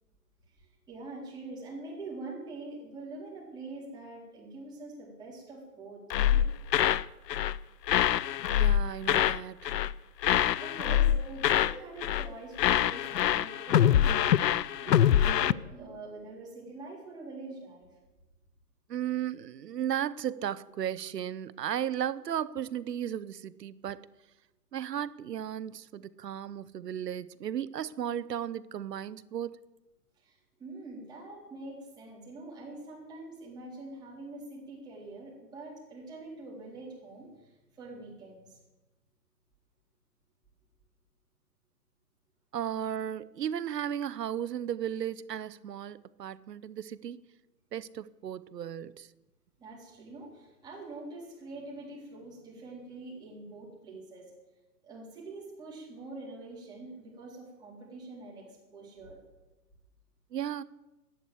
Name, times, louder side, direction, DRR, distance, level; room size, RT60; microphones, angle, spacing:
voice 1, 0.5-6.4 10.6-17.9 19.0-19.1 30.2-38.6 49.6-54.3 54.8-59.2, right 2 dB, 10° right, 3.9 m, -45 dB
sound 1, 6.1-7.0 7.3-7.6 7.9-9.4 9.6-9.9 10.2-11.8 12.0-12.3 12.6-15.5, left 10 dB, 80° left, 0.7 m, -25 dB
voice 2, 8.5-9.7 18.9-24.1 24.7-29.6 42.5-47.2 47.7-49.1 60.3-60.6, right 10 dB, 80° right, 0.9 m, -35 dB
13.5 x 11.0 x 7.9 m
hypercardioid pair, 160°, 49 cm